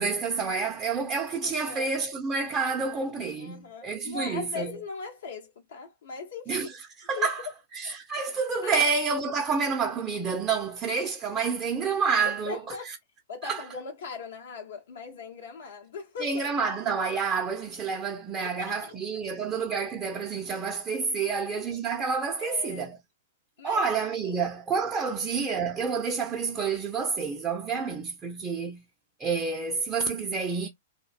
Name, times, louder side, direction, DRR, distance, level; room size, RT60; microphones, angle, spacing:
voice 1, 0.0-4.7 6.5-6.7 7.1-7.4 7.7-12.6 13.4-13.6 16.2-23.0 23.6-28.8 29.2-30.7, right 5 dB, 25° right, 0.5 m, -29 dB
voice 2, 1.4-2.0 2.6-3.0 3.4-6.8 7.2-7.5 8.6-8.8 12.2-12.9 13.3-16.4 18.4-19.0 21.2-21.4 22.4-23.0 23.6-23.9 24.2-24.5, left 5 dB, 65° left, 0.8 m, -40 dB
2.6 x 2.1 x 2.4 m
figure-of-eight pair, 105°, 0 cm